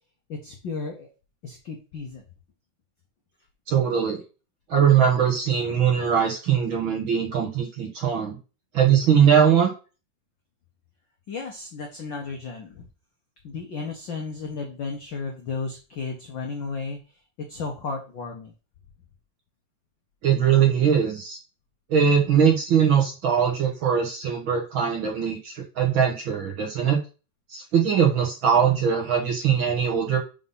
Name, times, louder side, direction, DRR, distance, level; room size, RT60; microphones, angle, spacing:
voice 1, 0.3-1.1 1.4-2.2 11.3-12.8 13.4-17.0 17.5-18.5, left 4 dB, 70° left, 2 dB, 1.1 m, -34 dB
voice 2, 3.7-4.2 4.7-8.4 8.7-9.7 20.2-21.4 21.9-27.0 27.5-30.2, right 8 dB, 55° right, 0 dB, 1.6 m, -21 dB
5.4 x 3.7 x 5.4 m, 0.33 s
omnidirectional pair, 3.3 m